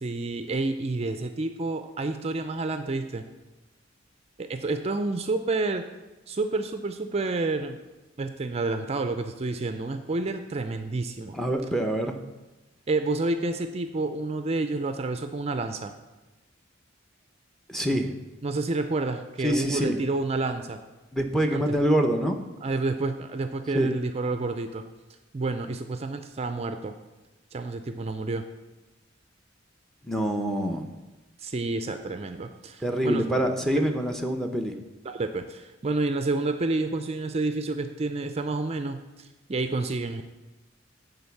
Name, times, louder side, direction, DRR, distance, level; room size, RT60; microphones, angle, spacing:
voice 1, 0.0-3.3 4.4-5.8 6.3-7.8 8.2-11.4 12.9-15.9 18.4-20.8 21.5-21.8 22.6-24.8 25.3-26.9 27.5-28.4 31.4-33.2 35.0-40.2, right 3 dB, 30° right, 7 dB, 0.4 m, -29 dB
voice 2, 11.3-12.2 17.7-18.1 19.4-20.0 21.1-22.4 23.7-23.9 30.0-30.9 32.8-34.7, equal, ahead, 4 dB, 0.7 m, -25 dB
9.6 x 4.0 x 7.0 m, 1.1 s
head